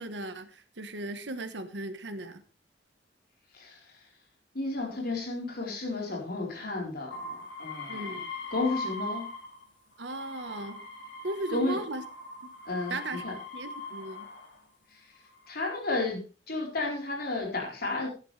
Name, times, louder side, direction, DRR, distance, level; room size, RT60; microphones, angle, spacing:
voice 1, 0.0-2.4 7.9-8.3 10.0-10.8 11.2-12.0 12.4-12.5 12.9-13.2 13.5-14.3, right 2 dB, 75° right, 9 dB, 1.3 m, -37 dB
voice 2, 3.5-4.1 4.5-8.2 8.5-9.3 11.5-11.8 12.6-13.0 13.2-13.4 14.9-15.2 15.5-18.1, left 2 dB, 60° left, 0 dB, 4.3 m, -32 dB
sound 1, 7.1-9.6 10.0-14.6 15.3-15.9, left 2 dB, 85° left, 3.8 m, -41 dB
17.0 x 11.0 x 3.4 m, 0.33 s
head